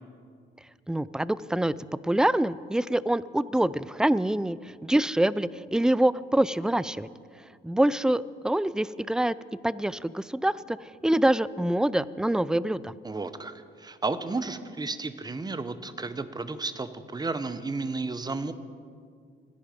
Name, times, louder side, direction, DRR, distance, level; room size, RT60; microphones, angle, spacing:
voice 1, 0.9-1.7 2.0-7.1 7.6-9.3 9.6-10.8 11.0-12.9, right 1 dB, 5° right, 18 dB, 0.4 m, -25 dB
voice 2, 13.0-18.5, right 3 dB, 20° right, 12 dB, 1.0 m, -33 dB
26.0 x 10.5 x 5.2 m, 2.1 s
cardioid pair, 90°, 20 cm